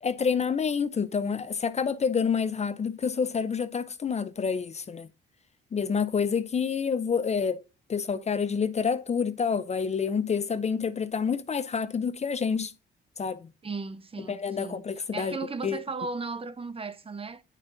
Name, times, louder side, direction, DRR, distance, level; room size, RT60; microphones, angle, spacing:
voice 1, 0.0-5.1 5.7-7.6 7.9-12.7 13.2-13.5 14.3-15.4 15.6-15.8, left 6 dB, 35° left, 0.6 m, -28 dB
voice 2, 13.6-14.8 15.1-17.4, right 4 dB, 30° right, 0.7 m, -36 dB
9.1 x 5.3 x 2.6 m
cardioid pair, 90°, 20 cm